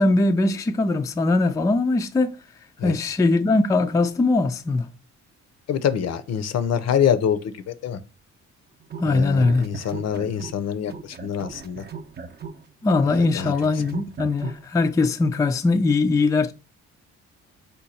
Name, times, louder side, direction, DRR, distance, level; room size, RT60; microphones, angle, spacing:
voice 1, 0.0-2.4 2.8-4.9 9.0-9.7 12.8-16.5, left 3 dB, 10° left, 0.3 m, -21 dB
voice 2, 5.7-8.0 9.0-11.8 13.1-13.5, left 8 dB, 60° left, 0.6 m, -25 dB
sound 1, 8.8-10.6 10.9-14.6, right 6 dB, 35° right, 0.6 m, -38 dB
5.1 x 2.2 x 4.1 m
cardioid pair, 90°, 30 cm